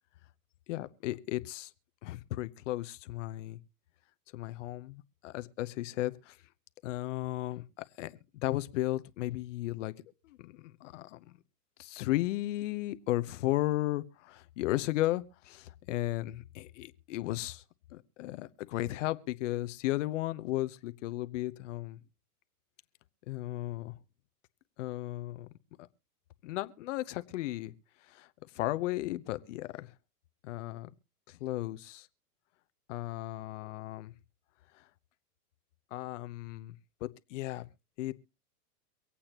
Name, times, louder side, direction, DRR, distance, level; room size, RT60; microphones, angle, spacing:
voice 1, 0.7-1.7 2.0-3.6 4.3-6.4 6.8-9.9 10.2-11.3 11.8-17.6 17.9-22.0 23.3-23.9 24.8-25.5 25.8-25.9 26.4-27.7 28.1-28.3 28.5-29.9 30.4-30.9 31.3-32.1 32.9-34.1 34.7-34.8 35.9-36.8 37.3-37.7 38.0-38.1, left 16 dB, 50° left, 13 dB, 0.9 m, -35 dB
24.5 x 8.6 x 3.0 m, 0.30 s
hypercardioid pair, 140°, 48 cm